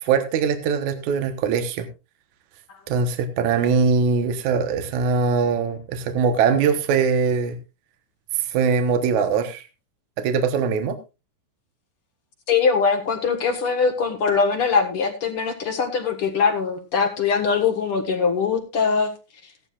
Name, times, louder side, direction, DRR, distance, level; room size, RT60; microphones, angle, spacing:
voice 1, 0.0-1.9 2.9-7.6 8.5-9.6 10.2-11.0, right 5 dB, 70° right, 8 dB, 2.5 m, -21 dB
voice 2, 12.5-19.1, left 5 dB, 50° left, 4 dB, 2.1 m, -22 dB
16.0 x 12.0 x 2.4 m, 0.27 s
omnidirectional pair, 3.5 m